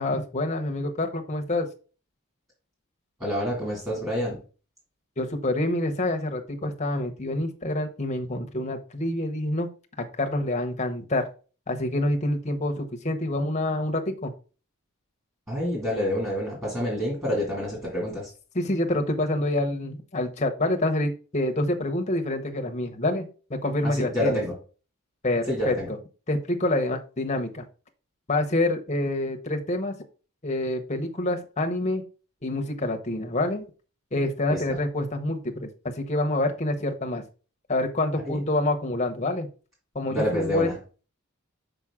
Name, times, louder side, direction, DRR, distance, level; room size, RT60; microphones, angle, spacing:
voice 1, 0.0-1.7 5.2-9.7 10.0-11.3 11.7-14.3 18.5-24.4 25.2-26.0 26.3-27.6 28.3-29.9 30.4-32.0 32.4-33.6 34.1-35.7 36.0-37.2 37.7-39.5 39.9-40.7, left 1 dB, 30° left, 4 dB, 0.9 m, -27 dB
voice 2, 3.2-4.4 15.5-18.3 23.8-24.5 25.5-25.9 34.5-34.8 38.2-38.4 40.1-40.7, equal, 15° right, -4 dB, 2.4 m, -28 dB
6.0 x 5.2 x 3.6 m, 0.36 s
head